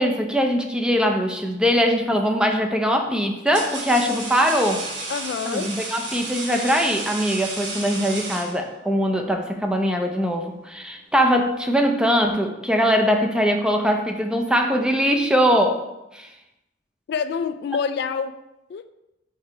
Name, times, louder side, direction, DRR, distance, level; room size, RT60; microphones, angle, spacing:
voice 1, 0.0-4.8 5.5-15.8 16.1-16.3, equal, 5° right, 3 dB, 0.5 m, -21 dB
sound 1, 1.9-2.2 3.0-9.0, right 3 dB, 80° right, 1.1 m, -33 dB
voice 2, 5.1-5.7 17.1-18.4 18.7-18.8, left 6 dB, 60° left, 10 dB, 0.3 m, -26 dB
4.7 x 4.5 x 4.8 m, 0.94 s
head